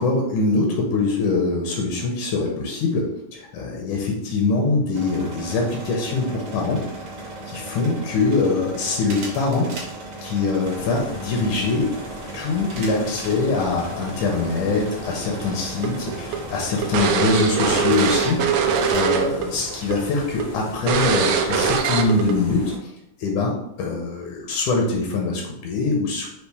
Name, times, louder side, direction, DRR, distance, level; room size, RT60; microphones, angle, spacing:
voice 1, 0.0-6.8 7.5-9.7 10.2-11.9 12.3-22.9 23.2-26.3, left 3 dB, 80° left, 0 dB, 2.1 m, -23 dB
sound 1, 4.9-19.1, right 2 dB, 60° right, 1.2 m, -36 dB
sound 2, 10.6-22.8, equal, 45° left, 0.7 m, -39 dB
sound 3, 15.8-19.5 19.7-19.9 20.4-20.5 20.9-22.3, right 6 dB, 90° right, 1.5 m, -21 dB
5.6 x 2.5 x 3.3 m, 0.79 s
omnidirectional pair, 3.7 m